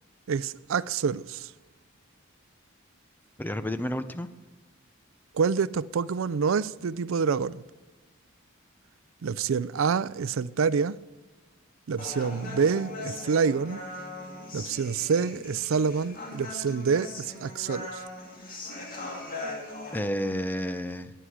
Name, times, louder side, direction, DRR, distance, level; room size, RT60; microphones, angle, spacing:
voice 1, 0.3-1.5 5.3-7.6 9.2-11.0 11.9-13.8 14.5-18.0, right 5 dB, 80° right, 0.4 m, -27 dB
voice 2, 3.4-4.3 19.9-21.1, equal, 10° left, 0.6 m, -30 dB
Human voice, 12.0-20.0, left 2 dB, 45° left, 2.8 m, -40 dB
18.0 x 10.0 x 4.9 m
head